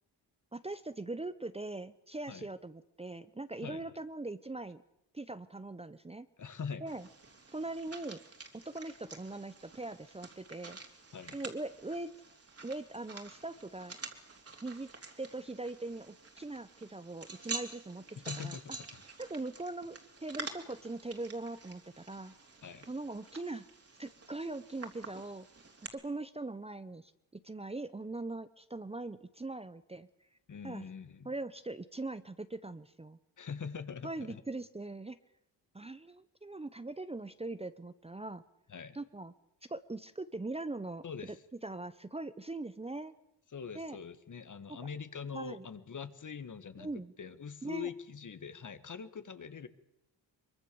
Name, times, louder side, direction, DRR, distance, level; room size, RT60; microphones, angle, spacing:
voice 1, 0.5-4.8 5.1-6.3 6.8-7.1 7.5-8.2 8.5-10.8 11.3-12.1 12.6-14.0 14.6-14.9 15.2-18.1 18.4-18.8 19.2-22.4 22.9-23.7 24.0-25.5 25.9-30.1 30.6-30.8 31.2-33.2 34.0-35.2 35.7-38.4 38.9-39.3 39.7-41.0 41.6-43.1 43.7-44.0 45.3-45.7 46.8-47.1 47.6-47.9, right 2 dB, 15° right, 13 dB, 0.8 m, -41 dB
voice 2, 6.4-6.8 11.1-11.4 18.3-18.8 22.6-22.9 30.5-31.3 33.4-34.4 38.7-39.0 41.0-41.4 43.5-46.9 47.2-49.7, left 6 dB, 50° left, 11 dB, 1.8 m, -43 dB
sound 1, 6.9-25.9, right 3 dB, 35° right, 3.2 m, -48 dB
23.5 x 23.5 x 7.0 m, 0.84 s
wide cardioid pair, 110°, 40 cm